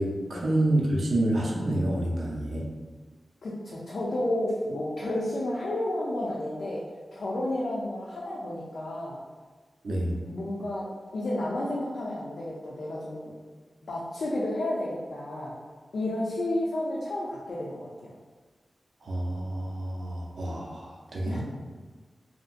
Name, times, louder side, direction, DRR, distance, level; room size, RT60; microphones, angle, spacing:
voice 1, 0.0-2.7 9.8-10.2 19.0-21.4, right 1 dB, 80° right, -3 dB, 0.5 m, -28 dB
voice 2, 3.4-6.9 7.1-9.2 10.3-13.3 13.8-15.6 15.9-18.2 21.2-21.4, left 1 dB, 80° left, -6 dB, 0.4 m, -31 dB
2.9 x 2.6 x 2.4 m, 1.4 s
wide cardioid pair, 95°, 0 cm